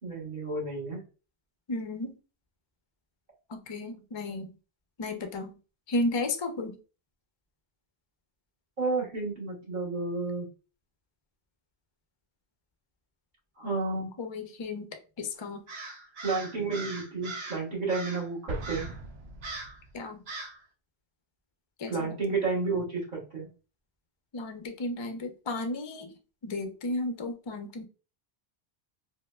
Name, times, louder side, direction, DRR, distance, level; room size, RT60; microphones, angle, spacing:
voice 1, 0.0-1.0 8.8-10.5 13.6-14.1 16.2-18.9 21.9-23.5, right 3 dB, 50° right, -5 dB, 1.5 m, -31 dB
voice 2, 1.7-2.2 3.5-4.5 5.0-5.6 5.9-6.8 14.2-14.9 15.2-15.6 19.9-20.2 21.8-22.2 24.3-26.1 26.4-27.8, left 2 dB, 45° left, 6 dB, 0.3 m, -33 dB
Crow, 15.7-17.6 17.9-18.3 18.6-19.0 19.4-19.8 20.3-20.6, right 3 dB, 70° right, 1.2 m, -40 dB
Explosion, 18.5-20.2, right 2 dB, 85° right, 0.9 m, -40 dB
4.3 x 2.1 x 2.2 m, 0.34 s
omnidirectional pair, 1.1 m